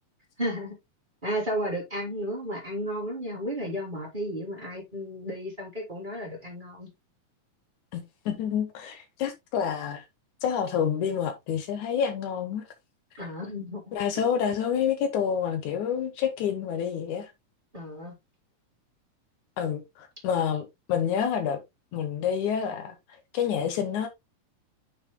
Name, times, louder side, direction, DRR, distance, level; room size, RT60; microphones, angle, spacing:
voice 1, 0.4-0.7 1.2-6.9 13.2-13.9 17.7-18.1, equal, 15° right, 3.0 m, -33 dB
voice 2, 7.9-10.0 10.4-12.6 13.9-17.3 19.6-21.6 21.9-23.0 23.3-24.1, left 8 dB, 75° left, 2.3 m, -28 dB
9.4 x 6.5 x 2.2 m
omnidirectional pair, 3.7 m